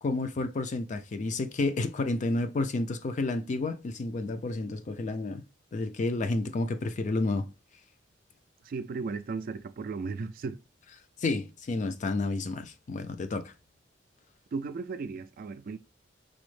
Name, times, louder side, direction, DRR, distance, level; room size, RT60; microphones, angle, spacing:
voice 1, 0.0-5.4 5.7-7.5 11.2-13.5, left 2 dB, 40° left, 0.4 m, -30 dB
voice 2, 8.6-10.6 14.5-15.8, right 4 dB, 50° right, 0.3 m, -35 dB
5.0 x 2.0 x 3.1 m
head